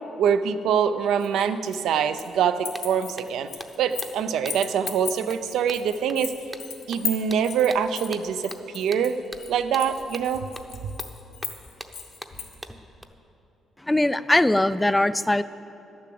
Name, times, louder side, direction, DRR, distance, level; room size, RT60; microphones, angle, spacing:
voice 1, 0.2-3.5 3.8-6.3 6.9-9.2 9.5-10.5, right 7 dB, 80° right, 10 dB, 0.5 m, -24 dB
sound 1, 1.2-2.3 2.6-4.2 4.5-12.5, left 7 dB, 75° left, 1.6 m, -36 dB
sound 2, 2.3-2.4 2.7-13.0, right 1 dB, 5° right, 0.7 m, -43 dB
voice 2, 13.9-15.4, left 1 dB, 10° left, 15 dB, 0.3 m, -21 dB
11.0 x 7.1 x 7.7 m, 2.9 s
cardioid pair, 90°, 0 cm